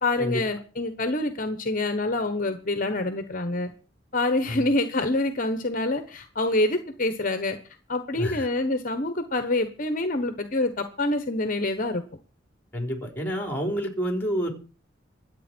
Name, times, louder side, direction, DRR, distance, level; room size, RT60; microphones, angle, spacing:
voice 1, 0.0-3.7 4.1-7.6 7.9-12.0, left 2 dB, 45° left, 8 dB, 1.2 m, -26 dB
voice 2, 8.2-8.5 12.7-14.5, equal, 10° left, 3 dB, 3.9 m, -28 dB
24.5 x 8.5 x 4.5 m, 0.36 s
head